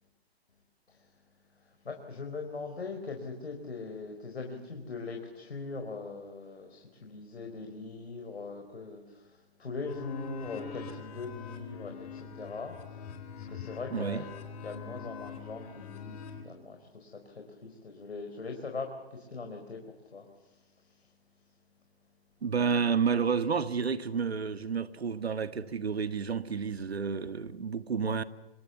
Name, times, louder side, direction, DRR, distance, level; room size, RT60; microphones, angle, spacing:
voice 1, 1.6-14.3 14.6-19.8 20.1-21.1, left 4 dB, 75° left, 4.6 m, -41 dB
sound 1, 9.9-16.4, left 5 dB, 35° left, 4.1 m, -43 dB
voice 2, 13.9-14.3 22.4-28.2, right 6 dB, 75° right, 1.8 m, -30 dB
25.5 x 21.5 x 7.2 m
figure-of-eight pair, 140°, 32 cm